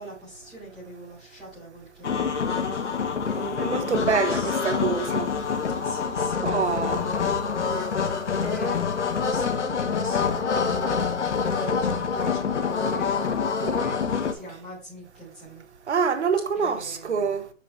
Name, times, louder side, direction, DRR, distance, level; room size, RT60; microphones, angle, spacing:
voice 1, 0.0-3.0 3.3-4.9 5.8-15.6 16.5-17.3, right 1 dB, ahead, 4.1 m, -41 dB
sound 1, 2.0-14.3, left 6 dB, 60° left, 1.3 m, -26 dB
voice 2, 3.6-5.3 6.4-7.0 8.5-8.6 15.9-17.5, right 6 dB, 60° right, 1.2 m, -26 dB
7.6 x 6.2 x 3.2 m
hypercardioid pair, 175°, 39 cm